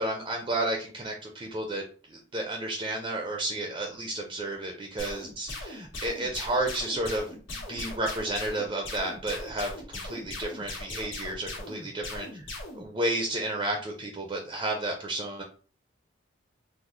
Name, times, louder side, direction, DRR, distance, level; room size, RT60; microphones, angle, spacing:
voice 1, 0.0-1.8 2.1-7.3 7.7-12.3 12.7-15.4, right 1 dB, 25° right, 2 dB, 0.4 m, -32 dB
sound 1, 5.0-12.8, left 2 dB, 85° left, 1.3 m, -39 dB
3.8 x 2.0 x 3.1 m, 0.38 s
head